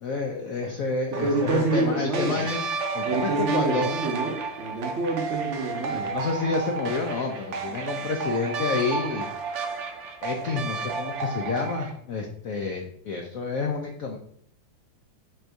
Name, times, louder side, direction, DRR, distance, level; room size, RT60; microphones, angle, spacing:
voice 1, 0.0-2.6 2.9-4.0 5.9-9.3 10.2-14.2, left 4 dB, 75° left, 2 dB, 0.8 m, -29 dB
voice 2, 1.1-2.4 3.0-6.1, right 2 dB, 55° right, -2 dB, 0.8 m, -27 dB
sound 1, 1.1-11.9, right 4 dB, 85° right, 0.6 m, -32 dB
4.3 x 2.6 x 4.5 m, 0.63 s
omnidirectional pair, 2.0 m